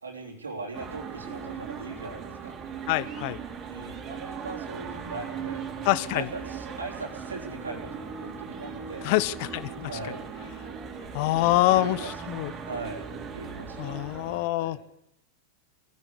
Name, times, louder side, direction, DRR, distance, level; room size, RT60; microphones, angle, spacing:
voice 1, 0.0-2.6 3.7-9.1 9.9-10.2 11.2-12.2 12.6-13.1 13.3-14.8, right 3 dB, 75° right, 1 dB, 3.5 m, -40 dB
sound 1, 0.7-14.5, right 6 dB, 30° right, 3.7 m, -39 dB
voice 2, 2.9-3.4 5.9-6.3 9.0-9.9 11.1-12.0 12.3-12.5 13.8-14.8, left 17 dB, 45° left, 19 dB, 0.9 m, -25 dB
22.0 x 15.5 x 8.3 m, 0.78 s
figure-of-eight pair, 90°, 0 cm